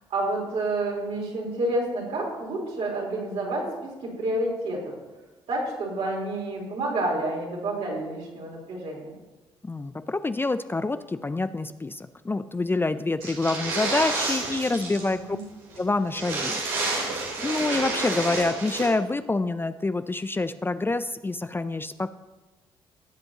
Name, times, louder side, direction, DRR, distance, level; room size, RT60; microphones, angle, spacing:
voice 1, 0.1-4.9 5.5-9.2 14.9-15.4, right 2 dB, 60° right, -3 dB, 4.1 m, -29 dB
voice 2, 9.6-15.4 15.8-16.5 17.4-22.1, left 3 dB, 20° left, 11 dB, 0.5 m, -27 dB
sound 1, 13.2-15.1 15.4-15.5 15.7-15.8 16.1-18.9, right 3 dB, 85° right, 2.7 m, -29 dB
18.0 x 7.7 x 3.0 m, 1.1 s
hypercardioid pair, 50°, 12 cm